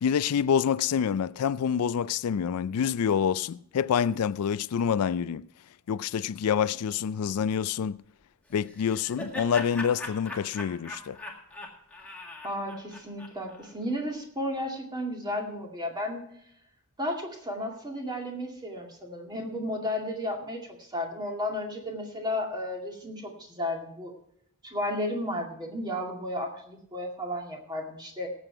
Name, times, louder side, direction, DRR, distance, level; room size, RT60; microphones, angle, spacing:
voice 1, 0.0-5.5 5.9-8.0 8.5-11.2, left 7 dB, 80° left, 0.4 m, -27 dB
Laughter, 8.5-13.7, left 2 dB, 5° left, 1.8 m, -40 dB
voice 2, 12.4-16.2 17.0-24.1 24.6-28.3, left 1 dB, 20° right, 2.2 m, -33 dB
18.0 x 7.8 x 4.5 m
head